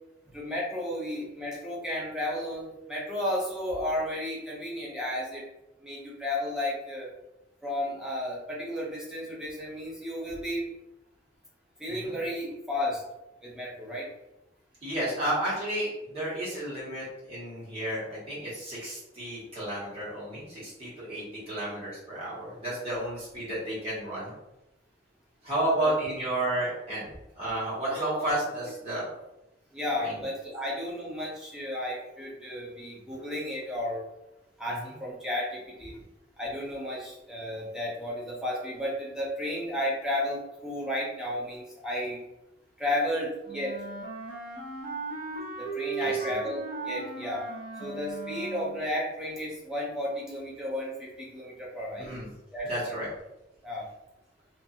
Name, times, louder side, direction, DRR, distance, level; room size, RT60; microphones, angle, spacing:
voice 1, 0.3-5.4 5.8-7.1 7.6-10.7 11.8-13.0 13.4-14.1 25.8-26.1 27.9-28.1 29.7-34.0 34.6-36.0 36.4-42.2 42.8-43.8 45.6-47.4 47.8-52.1 52.5-52.9 53.6-53.9, left 1 dB, 5° right, -5 dB, 0.6 m, -33 dB
voice 2, 14.8-24.3 25.4-27.0 27.4-29.0 30.0-30.2 46.0-46.4 52.0-52.3 52.6-53.1, right 1 dB, 30° right, -8 dB, 1.3 m, -32 dB
Wind instrument woodwind instrument, 43.5-48.9, right 4 dB, 50° right, 0.8 m, -36 dB
2.5 x 2.4 x 2.6 m, 0.94 s
head